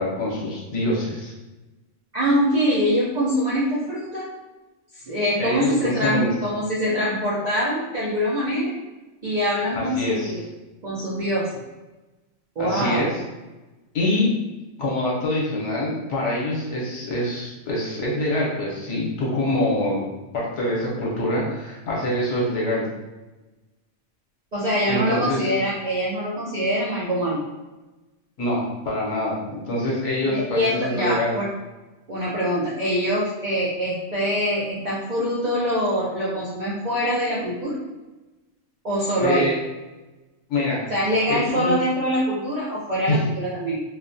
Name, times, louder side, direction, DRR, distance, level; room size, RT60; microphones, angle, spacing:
voice 1, 0.0-1.3 5.4-6.3 9.7-10.4 12.6-13.2 13.9-14.3 14.8-20.0 20.3-22.8 24.9-25.6 28.4-31.4 39.2-39.6 40.5-41.7 43.1-43.2, left 1 dB, 70° left, -4 dB, 1.0 m, -25 dB
voice 2, 2.1-4.3 4.9-8.7 9.2-10.4 10.8-11.5 12.6-13.1 24.5-27.5 30.2-31.5 32.1-37.8 38.8-39.5 40.9-43.8, equal, 85° right, -7 dB, 0.3 m, -24 dB
2.4 x 2.1 x 2.5 m, 1.1 s
omnidirectional pair, 1.3 m